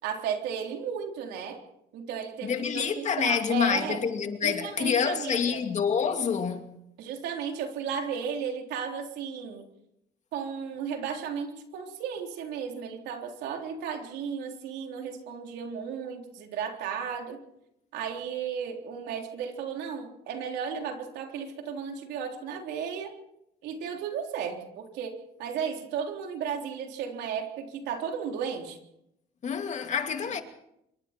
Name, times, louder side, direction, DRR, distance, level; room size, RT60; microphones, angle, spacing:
voice 1, 0.0-1.6 1.9-4.0 4.4-5.6 7.0-9.6 10.3-17.4 17.9-23.1 23.6-25.1 25.4-28.8, right 7 dB, 85° right, 3.7 m, -34 dB
voice 2, 2.4-6.6 29.4-30.4, left 7 dB, 45° left, 2.5 m, -27 dB
26.0 x 23.5 x 4.5 m
cardioid pair, 110°, 17 cm